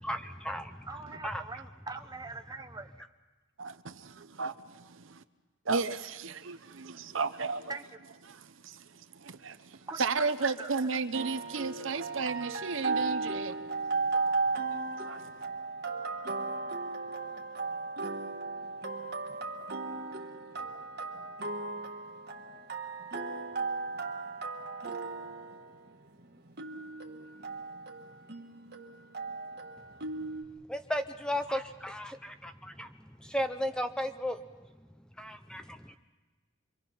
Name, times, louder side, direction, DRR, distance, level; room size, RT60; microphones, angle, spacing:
voice 1, 0.0-1.4 30.7-34.4 35.2-36.0, equal, 5° left, 0.6 m, -35 dB
voice 2, 0.9-2.9 7.7-8.0 9.9-10.3 10.6-10.7, right 3 dB, 20° right, 1.0 m, -42 dB
voice 3, 3.6-5.2 5.7-7.7 8.3-13.6 15.0-15.3, right 4 dB, 65° right, 0.8 m, -34 dB
sound 1, 11.1-30.4, right 3 dB, 50° right, 1.6 m, -36 dB
26.5 x 24.0 x 5.7 m
head